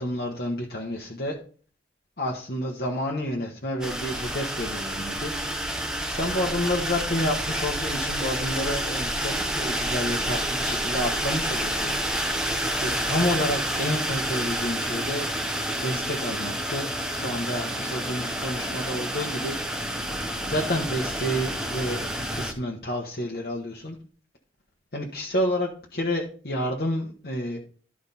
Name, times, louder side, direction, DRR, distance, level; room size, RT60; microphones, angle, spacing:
voice 1, 0.0-1.4 2.2-5.3 6.0-11.9 12.8-15.2 15.8-19.6 20.4-24.0 24.9-27.6, equal, 60° left, -2 dB, 1.3 m, -29 dB
sound 1, 3.8-22.5, right 1 dB, 5° right, 0.9 m, -29 dB
12.0 x 5.0 x 4.2 m, 0.41 s
head